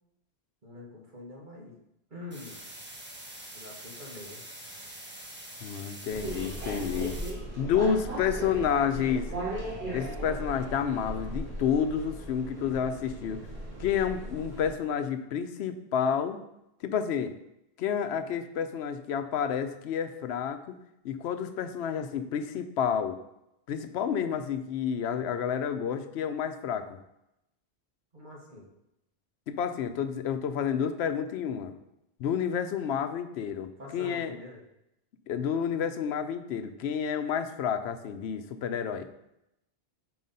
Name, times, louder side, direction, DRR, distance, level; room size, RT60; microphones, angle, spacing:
voice 1, 0.6-1.7 2.1-2.6 3.5-4.4 28.1-28.7 33.8-34.6, left 2 dB, 50° right, -2 dB, 1.5 m, -45 dB
sound 1, 2.3-7.3, right 1 dB, 10° right, 0.8 m, -45 dB
voice 2, 5.6-7.2 7.6-9.3 9.9-13.4 13.8-16.4 16.8-17.3 17.8-20.7 21.0-23.2 23.7-27.0 29.5-31.8 32.2-34.3 35.3-39.1, left 7 dB, 85° left, 9 dB, 0.8 m, -30 dB
sound 2, 6.1-14.7, right 1 dB, 75° right, 1.9 m, -37 dB
5.0 x 3.9 x 5.3 m, 0.84 s
omnidirectional pair, 1.1 m